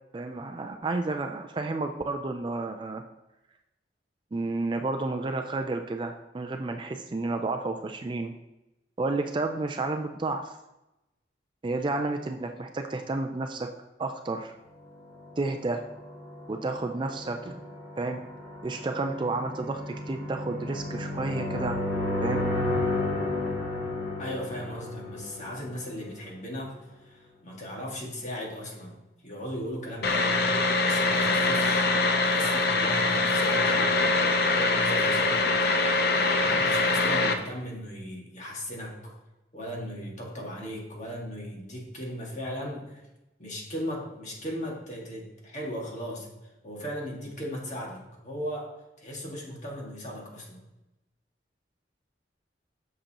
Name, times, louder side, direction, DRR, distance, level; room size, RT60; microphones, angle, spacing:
voice 1, 0.1-3.0 4.3-8.3 9.0-10.6 11.6-13.7 14.0-14.5 15.4-15.9 16.5-17.7 18.0-18.2 18.6-21.8 22.2-22.5, right 3 dB, 25° right, 5 dB, 0.4 m, -31 dB
sound 1, 15.4-26.2, left 2 dB, 25° left, 2.8 m, -32 dB
voice 2, 24.2-29.0 29.2-30.4 30.8-31.9 32.2-34.0 34.5-35.5 36.2-39.1 39.5-43.0 43.4-48.7 49.0-50.6, equal, 40° left, -2 dB, 1.8 m, -37 dB
sound 2, 30.0-37.3, left 3 dB, 60° left, 0.7 m, -23 dB
7.7 x 6.7 x 2.9 m, 0.94 s
head